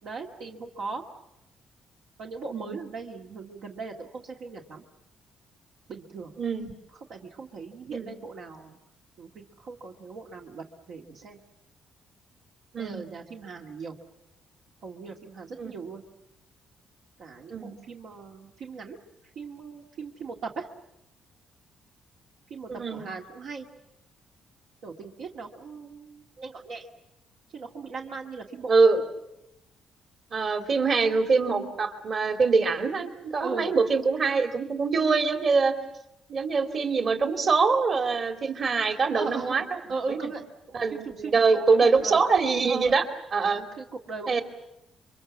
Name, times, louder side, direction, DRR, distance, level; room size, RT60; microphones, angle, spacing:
voice 1, 0.0-1.0 2.2-4.8 5.9-6.3 7.1-8.8 9.2-11.4 12.8-13.9 14.8-16.0 17.2-19.0 19.4-20.7 22.5-23.7 24.8-26.9 27.5-28.7 33.4-33.7 39.1-39.6 39.9-40.4 40.7-42.2 42.6-42.9 43.8-44.4, right 4 dB, 75° right, 0 dB, 2.1 m, -38 dB
voice 2, 6.4-6.7 7.9-8.1 12.7-13.0 15.6-15.7 17.5-17.7 22.7-23.1 28.7-29.0 30.3-35.7 36.3-39.6 40.1-40.3 40.7-43.0 43.3-43.7 44.3-44.4, right 4 dB, 50° right, 6 dB, 2.8 m, -24 dB
28.5 x 24.0 x 7.3 m, 0.86 s
cardioid pair, 90°, 0 cm